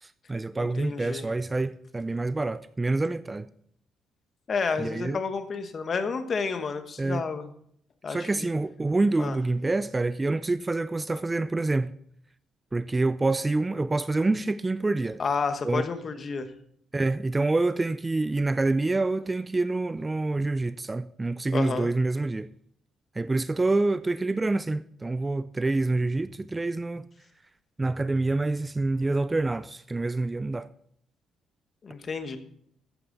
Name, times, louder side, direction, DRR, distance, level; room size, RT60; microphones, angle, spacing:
voice 1, 0.0-3.5 4.8-5.2 7.0-7.2 8.1-11.9 12.7-15.2 15.6-15.8 16.9-22.5 23.2-27.0 27.8-30.7, right 2 dB, 15° right, 0.3 m, -27 dB
voice 2, 0.6-1.3 4.5-7.5 8.0-8.5 9.2-9.4 15.2-16.5 21.5-21.9 31.8-32.4, left 5 dB, 40° left, 1.2 m, -30 dB
13.5 x 8.9 x 3.9 m
cardioid pair, 125°, 0 cm